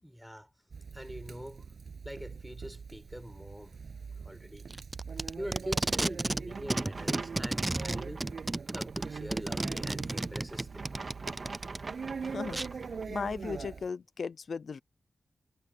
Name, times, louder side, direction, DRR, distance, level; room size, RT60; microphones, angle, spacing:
voice 1, 0.0-0.5 0.9-1.6 2.0-3.8 4.2-4.7 5.4-8.3 8.7-10.9, equal, ahead, 6.8 m, -43 dB
Conversation, 0.7-13.9, right 5 dB, 70° right, 7.7 m, -43 dB
Packing tape duct tape, 4.7-6.4 6.7-11.8 12.5-12.7, right 2 dB, 20° right, 0.4 m, -32 dB
sound 1, 6.5-13.1, right 4 dB, 45° right, 3.4 m, -45 dB
voice 2, 13.1-14.8, left 5 dB, 65° left, 0.6 m, -36 dB
wide cardioid pair, 110°, 0 cm